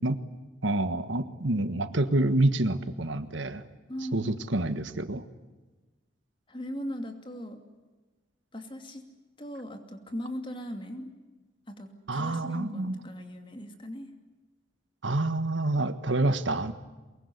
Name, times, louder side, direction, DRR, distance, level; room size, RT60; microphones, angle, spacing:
voice 1, 0.6-3.6 4.1-5.2 12.1-13.0 15.0-16.7, right 2 dB, 75° right, 10 dB, 1.5 m, -27 dB
voice 2, 3.9-4.4 6.5-7.6 8.5-9.0 9.4-11.1 11.7-14.1, equal, 25° left, 5 dB, 2.7 m, -38 dB
23.5 x 22.0 x 9.8 m, 1.2 s
head